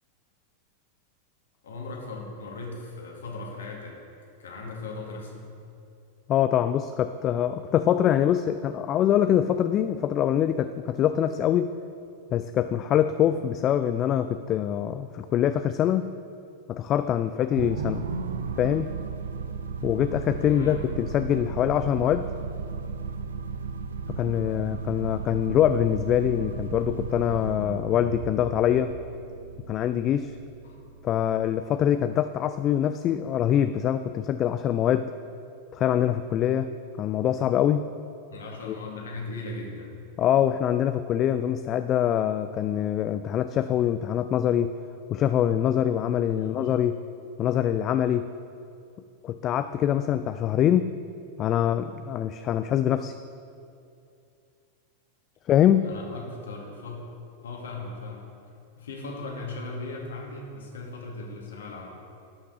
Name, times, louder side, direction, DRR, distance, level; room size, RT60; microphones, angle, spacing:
voice 1, 1.6-4.0 4.4-5.5 20.4-20.9 30.6-30.8 38.3-40.0 46.3-46.7 55.8-57.0 57.4-58.3 58.7-61.9, left 3 dB, 65° left, 0 dB, 2.0 m, -38 dB
voice 2, 6.3-11.7 12.3-16.1 16.7-18.0 18.6-18.9 19.8-22.3 24.1-28.9 29.7-30.3 31.0-35.1 35.7-37.8 38.7-38.8 40.2-44.7 45.1-47.0 47.4-48.3 49.2-50.9 51.4-53.1 55.5-56.0, left 10 dB, 30° left, 11 dB, 0.3 m, -24 dB
sound 1, 17.6-32.0, right 5 dB, 65° right, 0.5 m, -35 dB
12.0 x 5.8 x 6.3 m, 2.5 s
figure-of-eight pair, 90°, 0 cm